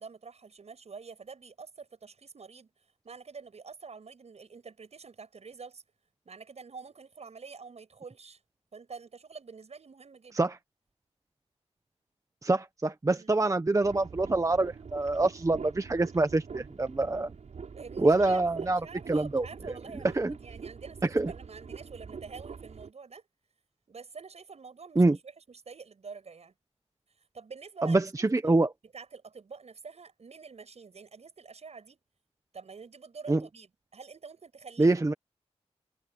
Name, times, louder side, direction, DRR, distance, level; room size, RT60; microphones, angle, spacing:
voice 1, 0.0-2.7 3.0-5.8 6.3-8.4 8.7-10.4 13.1-13.4 17.7-23.2 23.9-26.5 27.3-28.5 28.9-32.0 32.5-35.2, right 5 dB, 70° right, 7.2 m, -47 dB
voice 2, 12.4-17.3 18.0-18.8 19.1-19.5 20.1-20.3 21.0-21.3 25.0-25.2 27.8-28.7 33.3-33.4 34.8-35.1, right 2 dB, 30° right, 1.1 m, -25 dB
sound 1, 13.8-22.9, right 5 dB, 85° right, 6.7 m, -44 dB
wide cardioid pair, 85°, 11 cm